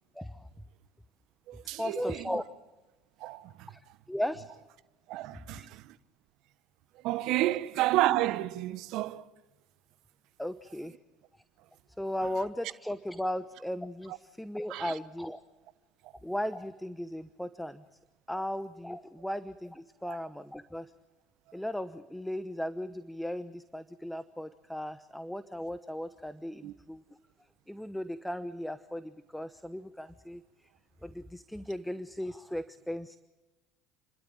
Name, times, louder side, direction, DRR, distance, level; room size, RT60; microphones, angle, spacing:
voice 1, 0.1-0.5 1.6-2.4 3.7-3.8 4.1-4.4 5.5-5.7 10.4-11.0 12.0-15.4 16.2-17.8 18.3-20.9 21.5-27.0 27.7-30.4 31.0-33.2, left 1 dB, 5° left, 0.9 m, -36 dB
voice 2, 1.5-2.2 3.2-3.7 5.1-5.9 7.0-9.2 14.7-14.9 26.6-26.7, right 15 dB, 65° right, 1.0 m, -30 dB
29.5 x 12.5 x 8.8 m
hypercardioid pair, 75°, 0 cm